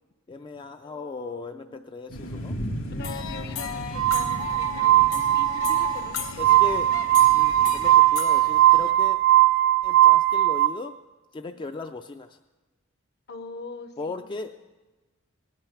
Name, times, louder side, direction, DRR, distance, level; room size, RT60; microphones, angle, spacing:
voice 1, 0.3-2.6 6.4-6.9 7.3-9.2 9.8-10.9 11.3-12.4 14.0-14.5, left 3 dB, 25° left, 7 dB, 0.3 m, -37 dB
voice 2, 0.8-1.8 2.9-6.6 13.3-14.2, left 4 dB, 50° left, 10 dB, 0.8 m, -42 dB
sound 1, 2.1-8.0, equal, 70° left, 2.1 m, -37 dB
sound 2, 3.0-8.9, left 8 dB, 85° left, 1.1 m, -36 dB
Glass, 3.9-10.7, right 15 dB, 60° right, 0.4 m, -19 dB
18.0 x 8.9 x 5.8 m, 1.2 s
head